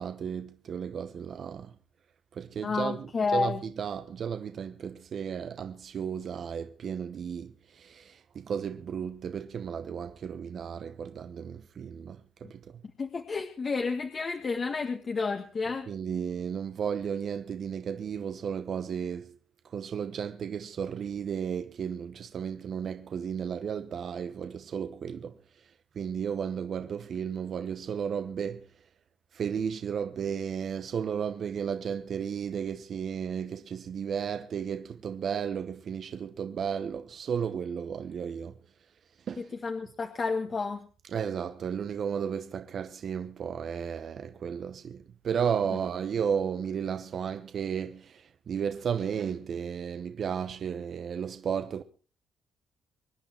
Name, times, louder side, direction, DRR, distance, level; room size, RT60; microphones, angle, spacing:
voice 1, 0.0-1.8 2.3-12.8 15.9-19.4 19.6-28.7 29.3-38.6 39.3-39.5 41.0-51.8, right 7 dB, 55° right, 1.0 m, -34 dB
voice 2, 2.6-3.6 13.0-15.9 39.4-40.8, left 4 dB, 40° left, 1.6 m, -30 dB
24.5 x 10.0 x 4.5 m
cardioid pair, 90°, 0 cm